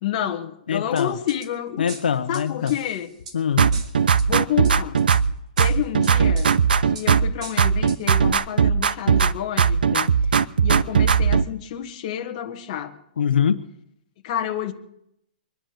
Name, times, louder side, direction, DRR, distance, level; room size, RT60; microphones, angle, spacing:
voice 1, 0.0-1.9 2.3-3.1 4.3-5.0 5.6-6.5 6.8-9.8 10.6-13.0 14.2-14.7, left 10 dB, 30° left, 1.7 m, -29 dB
voice 2, 0.7-1.1 1.8-2.7 3.3-3.7 9.9-10.1 13.2-13.6, left 8 dB, 85° left, 1.1 m, -23 dB
sound 1, 1.0-1.5 1.9-3.4 3.7-4.3 4.6-5.2 5.6-6.6 6.9-7.1 7.4-8.0 8.3-8.4, right 4 dB, 50° right, 3.2 m, -39 dB
sound 2, 3.6-5.3 5.6-7.3 7.6-9.3 9.6-11.5, right 6 dB, 85° right, 0.7 m, -18 dB
24.5 x 10.5 x 5.2 m
hypercardioid pair, 170°, 5 cm